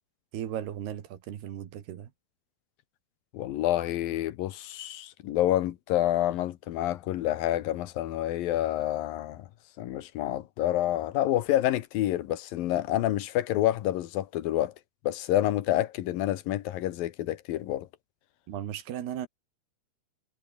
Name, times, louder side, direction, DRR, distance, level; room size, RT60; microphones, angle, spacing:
voice 1, 0.3-2.1 18.5-19.3, right 10 dB, 80° right, 4.2 m, -36 dB
voice 2, 3.3-9.5 9.8-14.7 15.0-17.9, left 13 dB, 70° left, 2.7 m, -28 dB
omnidirectional pair, 4.6 m